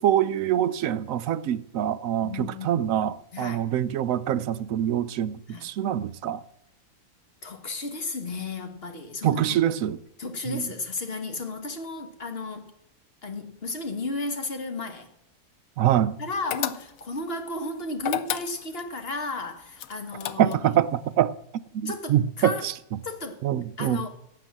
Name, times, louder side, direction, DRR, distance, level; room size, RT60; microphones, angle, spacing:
voice 1, 0.0-6.4 9.2-10.0 10.5-10.6 15.8-16.2 20.4-20.9 21.2-21.3 21.7-22.7 23.4-24.0, right 11 dB, 70° right, 0.9 m, -25 dB
voice 2, 2.2-2.8 3.3-3.7 5.5-5.6 7.4-9.6 10.2-12.7 13.2-15.1 16.2-20.8 21.8-22.7 23.0-23.4 23.8-24.1, left 3 dB, 40° left, 1.5 m, -34 dB
hanging up your clothes, 16.5-17.2 18.0-18.9 19.8-20.8, left 11 dB, 70° left, 1.0 m, -31 dB
12.0 x 7.6 x 7.4 m
omnidirectional pair, 1.7 m